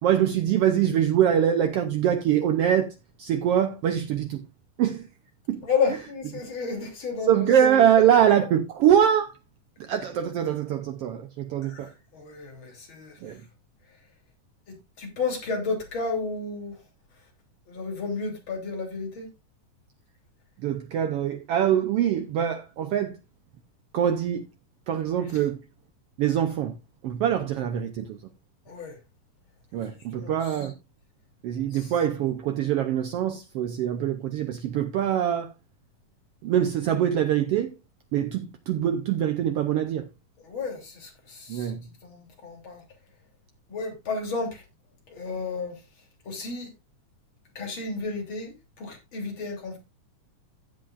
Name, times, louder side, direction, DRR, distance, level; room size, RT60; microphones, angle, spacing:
voice 1, 0.0-4.4 4.8-5.1 5.5-5.7 7.3-9.3 9.8-11.9 13.2-13.4 20.6-23.2 23.9-24.5 24.9-25.6 26.2-26.8 27.0-28.2 29.7-30.7 31.4-35.5 36.4-37.7 38.1-40.1 41.5-41.9, right 10 dB, 90° right, 1.3 m, -24 dB
voice 2, 5.6-7.5 11.7-13.2 14.7-16.8 17.7-19.3 28.7-29.0 29.8-30.6 31.7-31.9 40.4-42.8 43.7-44.6 45.1-45.8 46.3-46.7 47.6-49.8, left 4 dB, 40° left, 3.6 m, -32 dB
16.0 x 7.7 x 2.4 m
omnidirectional pair, 3.6 m